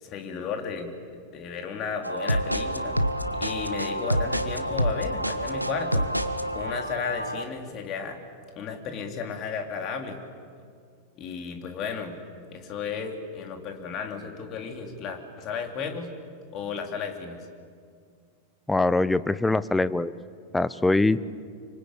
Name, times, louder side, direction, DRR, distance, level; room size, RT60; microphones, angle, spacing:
voice 1, 0.0-0.9 1.3-3.0 3.4-6.1 6.5-8.2 8.6-10.2 11.2-12.1 12.5-16.1 16.5-17.5, left 6 dB, 35° left, 3 dB, 3.5 m, -34 dB
sound 1, 2.0-7.4, equal, 90° right, 1.2 m, -28 dB
voice 2, 18.7-20.1 20.5-21.2, left 2 dB, 5° left, 16 dB, 0.7 m, -23 dB
26.5 x 25.0 x 8.4 m, 2.1 s
figure-of-eight pair, 90°, 0 cm